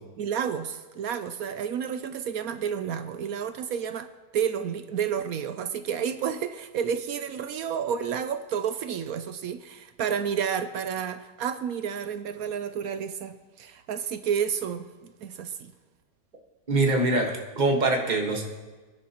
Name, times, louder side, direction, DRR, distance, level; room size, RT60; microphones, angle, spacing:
voice 1, 0.0-15.7, right 8 dB, 65° right, 10 dB, 1.0 m, -31 dB
voice 2, 16.7-18.4, right 2 dB, 30° right, 2 dB, 1.5 m, -24 dB
22.0 x 11.0 x 3.0 m, 1.3 s
omnidirectional pair, 1.8 m